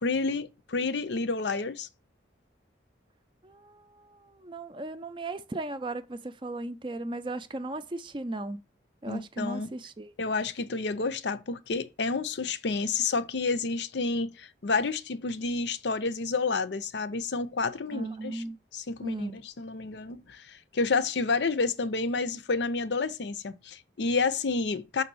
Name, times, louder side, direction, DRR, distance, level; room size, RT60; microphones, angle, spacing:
voice 1, 0.0-1.9 9.1-9.7 10.2-18.4 18.7-25.0, left 4 dB, 65° left, 0.6 m, -30 dB
voice 2, 3.4-8.6 9.0-10.1 17.9-18.6 19.0-19.4, right 2 dB, 25° right, 0.4 m, -36 dB
5.9 x 4.0 x 6.1 m
head